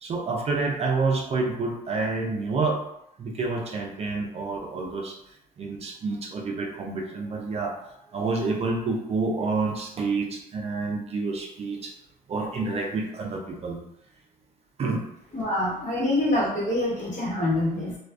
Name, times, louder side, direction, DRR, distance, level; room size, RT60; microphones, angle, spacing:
voice 1, 0.0-2.8 3.2-5.1 5.6-7.8 8.1-11.9 12.3-13.8 14.8-15.0, right 3 dB, 40° right, 1 dB, 0.5 m, -28 dB
voice 2, 15.3-18.0, left 1 dB, 45° left, -5 dB, 1.1 m, -25 dB
2.4 x 2.3 x 2.3 m, 0.76 s
cardioid pair, 110°, 17 cm